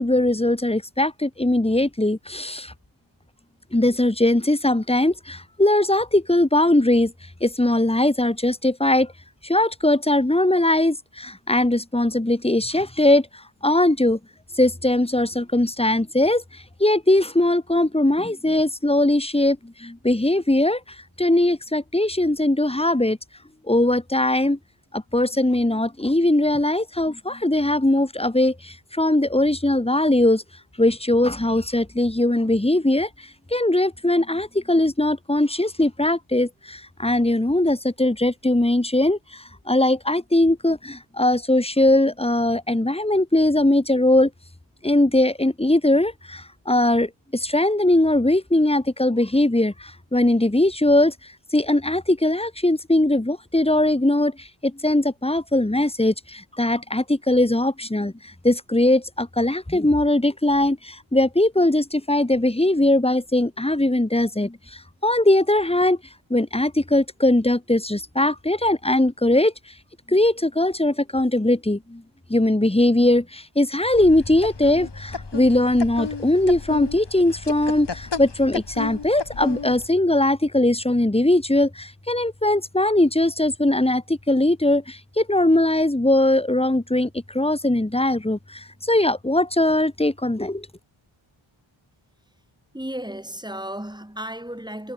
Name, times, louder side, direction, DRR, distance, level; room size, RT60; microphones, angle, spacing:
voice 1, 0.0-2.7 3.7-7.1 7.4-9.1 9.4-14.2 14.5-23.2 23.7-24.6 24.9-30.4 30.8-44.3 44.8-51.1 51.5-66.0 66.3-69.5 70.1-72.0 72.3-90.7, left 1 dB, 10° left, 2.5 m, -20 dB
sound 1, 73.9-79.9, left 5 dB, 60° left, 4.7 m, -33 dB
voice 2, 92.7-94.9, right 1 dB, 10° right, 7.4 m, -34 dB
wide cardioid pair, 70°, 48 cm